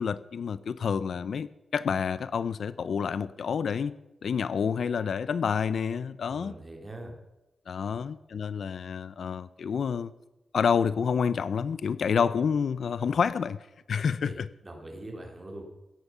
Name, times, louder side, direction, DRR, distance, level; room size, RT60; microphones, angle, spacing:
voice 1, 0.0-4.0 4.2-6.5 7.7-10.1 10.5-13.6 13.9-14.5, left 6 dB, 65° left, 0.5 m, -28 dB
voice 2, 6.3-7.1 7.9-8.0 14.2-15.6, right 1 dB, 20° right, 3.0 m, -43 dB
16.5 x 10.5 x 6.9 m
wide cardioid pair, 160°, 0 cm